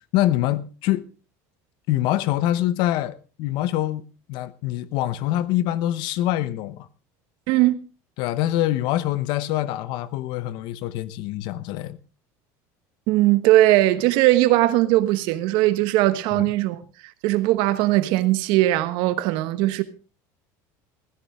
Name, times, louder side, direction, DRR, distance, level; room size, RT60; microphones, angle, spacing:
voice 1, 0.1-1.1 1.9-4.0 4.3-6.9 8.2-12.0 16.4-16.5, left 14 dB, 65° left, 0.9 m, -24 dB
voice 2, 7.5-7.8 13.1-16.8 17.2-19.8, right 16 dB, 70° right, 1.2 m, -19 dB
16.0 x 13.5 x 3.6 m
cardioid pair, 140°, 9 cm